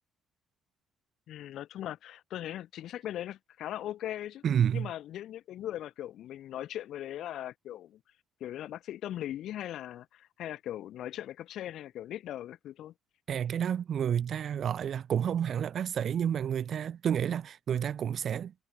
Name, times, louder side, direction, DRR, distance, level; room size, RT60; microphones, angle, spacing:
voice 1, 1.3-4.4 4.7-8.0 8.4-12.9, left 12 dB, 70° left, 2.7 m, -39 dB
voice 2, 4.4-4.9 13.3-18.5, right 8 dB, 55° right, 1.2 m, -30 dB
supercardioid pair, 85°, 0 cm